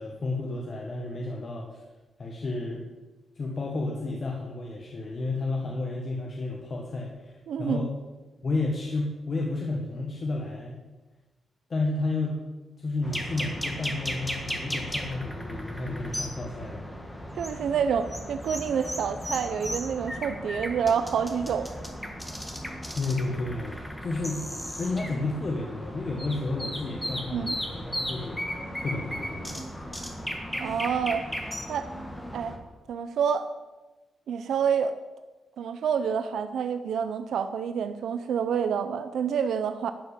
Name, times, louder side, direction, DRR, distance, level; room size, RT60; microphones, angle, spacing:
voice 1, 0.0-1.8 2.2-2.8 3.3-7.9 8.4-10.8 11.7-12.4 12.8-16.8 22.9-24.4 24.8-28.4 28.8-29.5, left 2 dB, 40° left, -1 dB, 1.5 m, -31 dB
voice 2, 7.5-7.9 17.4-21.7 27.3-27.6 30.6-31.2 31.7-31.9 32.3-32.6 32.9-33.5 34.3-35.0 35.6-39.9, right 7 dB, 80° right, 10 dB, 0.6 m, -28 dB
sound 1, 13.0-32.6, equal, 5° left, 1.5 m, -36 dB
11.5 x 5.8 x 8.3 m, 1.2 s
wide cardioid pair, 150°, 0 cm